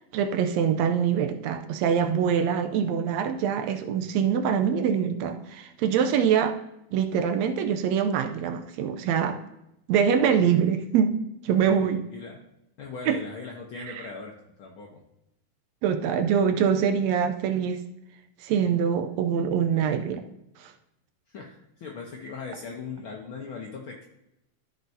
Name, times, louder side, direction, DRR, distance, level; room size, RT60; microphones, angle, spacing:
voice 1, 0.1-6.6 6.9-9.4 9.9-12.0 13.1-13.2 13.9-14.0 15.8-17.8 18.4-20.2 20.6-20.7, right 7 dB, 85° right, 7 dB, 1.6 m, -24 dB
voice 2, 11.7-12.4 12.8-14.3 14.6-15.0 16.8-16.9 21.3-24.1, left 5 dB, 85° left, -1 dB, 1.1 m, -39 dB
14.0 x 6.0 x 2.7 m, 0.84 s
omnidirectional pair, 3.8 m